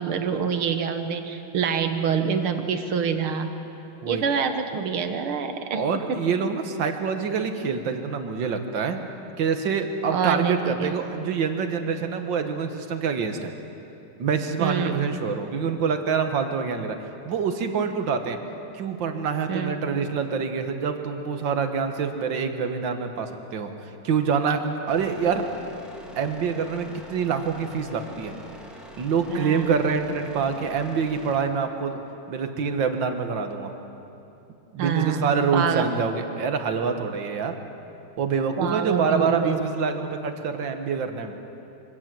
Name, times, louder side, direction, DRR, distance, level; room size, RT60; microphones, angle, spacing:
voice 1, 0.0-3.5 4.1-5.8 6.1-6.2 10.1-11.0 14.6-15.0 19.5-19.8 29.3-29.8 34.8-35.9 38.6-39.6, right 6 dB, 85° right, 7 dB, 2.2 m, -26 dB
voice 2, 5.7-9.0 9.4-13.5 14.2-17.0 17.3-18.4 18.7-25.5 26.2-28.4 29.0-32.0 32.3-33.7 34.7-37.6 38.2-41.4, right 6 dB, 65° right, 6 dB, 2.0 m, -26 dB
sound 1, 24.9-31.4, equal, ahead, 2.0 m, -44 dB
24.0 x 16.5 x 7.7 m, 2.8 s
omnidirectional pair, 2.3 m